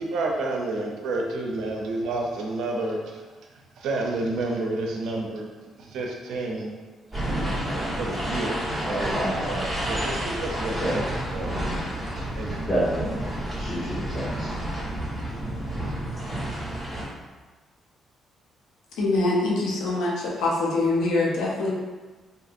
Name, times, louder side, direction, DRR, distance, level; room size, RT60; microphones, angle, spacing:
voice 1, 0.0-3.2 3.8-5.5 5.8-6.8 7.6-11.5 12.3-12.7, right 2 dB, 80° right, 0 dB, 0.4 m, -30 dB
sound 1, 7.1-17.0, right 1 dB, 5° left, 1.2 m, -30 dB
voice 2, 8.8-9.6 10.6-11.0 12.6-13.2 13.5-14.5, equal, 25° left, -10 dB, 1.5 m, -29 dB
voice 3, 19.0-21.7, left 2 dB, 90° left, -4 dB, 0.5 m, -24 dB
2.6 x 2.6 x 2.4 m, 1.3 s
cardioid pair, 90°, 0 cm